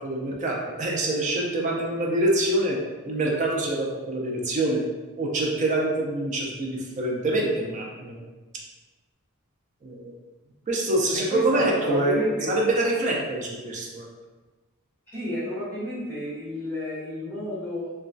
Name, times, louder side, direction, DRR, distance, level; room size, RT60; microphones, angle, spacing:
voice 1, 0.0-2.8 3.0-4.8 5.2-8.2 9.8-10.1 10.7-14.0, right 2 dB, 35° right, -1 dB, 0.4 m, -25 dB
voice 2, 11.1-12.6 15.1-17.9, left 1 dB, 10° left, -9 dB, 1.1 m, -31 dB
3.0 x 2.2 x 2.5 m, 1.2 s
head